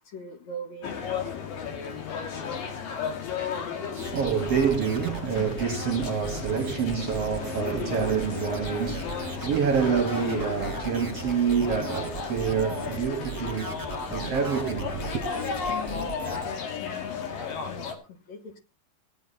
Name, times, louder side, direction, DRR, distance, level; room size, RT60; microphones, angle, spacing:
voice 1, 0.1-0.9 15.7-18.0 18.3-18.6, left 1 dB, 55° left, 2.6 m, -41 dB
sound 1, 0.8-17.9, left 6 dB, 70° left, 3.7 m, -34 dB
sound 2, 3.9-16.5, right 5 dB, 20° right, 0.5 m, -39 dB
voice 2, 3.9-15.3, right 7 dB, 55° right, 1.9 m, -27 dB
18.5 x 9.4 x 4.1 m
omnidirectional pair, 4.2 m